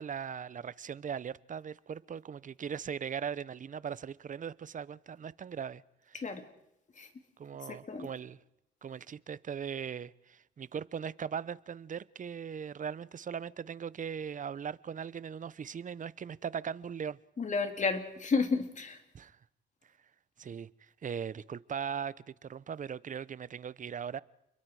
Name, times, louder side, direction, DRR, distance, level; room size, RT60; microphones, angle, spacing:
voice 1, 0.0-5.8 6.1-6.3 7.4-8.4 8.8-17.2 19.1-19.4 20.4-24.2, right 7 dB, 40° right, 0.8 m, -39 dB
voice 2, 7.7-8.1 17.4-19.0, left 4 dB, 40° left, 3.4 m, -32 dB
30.0 x 22.5 x 4.9 m
cardioid pair, 90°, 20 cm